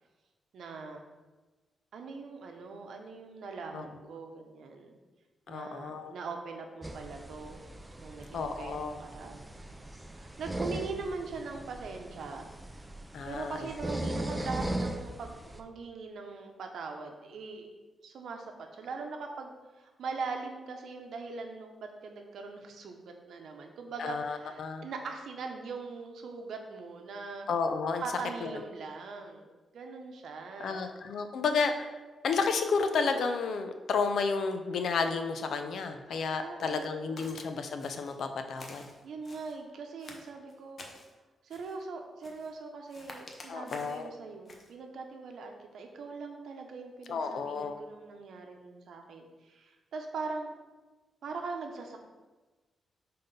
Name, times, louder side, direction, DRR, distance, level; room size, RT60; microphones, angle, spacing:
voice 1, 0.5-1.0 1.9-5.0 5.5-7.6 8.0-12.5 13.2-17.7 18.0-27.5 28.0-30.9 36.1-37.2 39.0-40.8 41.4-50.6 51.2-52.0, right 4 dB, 70° right, 3 dB, 0.8 m, -41 dB
voice 2, 5.5-6.1 8.3-9.0 13.1-13.7 24.0-24.9 27.5-28.0 28.4-28.5 30.6-32.0 32.2-38.9 43.5-44.1 47.1-47.8, left 5 dB, 65° left, 7 dB, 0.6 m, -31 dB
sound 1, 6.8-15.6, right 1 dB, 10° right, 0.4 m, -39 dB
Walk footsteps, 37.2-37.5 37.8-38.2 38.6-39.6 40.0-41.1 41.5-41.8 42.2-42.6 42.9-44.0 44.5-44.7, left 2 dB, 35° left, 0.8 m, -49 dB
5.8 x 3.8 x 5.3 m, 1.2 s
wide cardioid pair, 165°, 0 cm